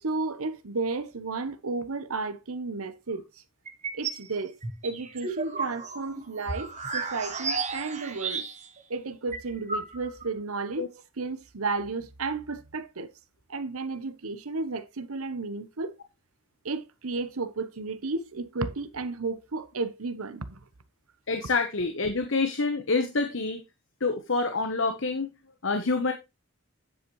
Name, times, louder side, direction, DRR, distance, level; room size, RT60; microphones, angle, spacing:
voice 1, 0.0-3.4 3.9-4.5 4.8-8.4 8.9-10.9 11.2-13.1 13.5-15.9 16.6-20.6, right 3 dB, 90° right, 1.0 m, -33 dB
sound 1, 3.7-4.2 4.6-8.8 9.1-9.2 9.3-10.3, right 4 dB, 35° right, 1.3 m, -33 dB
voice 2, 21.3-23.6 24.0-25.3 25.6-26.1, left 3 dB, 65° left, 1.1 m, -27 dB
9.7 x 8.0 x 3.1 m
head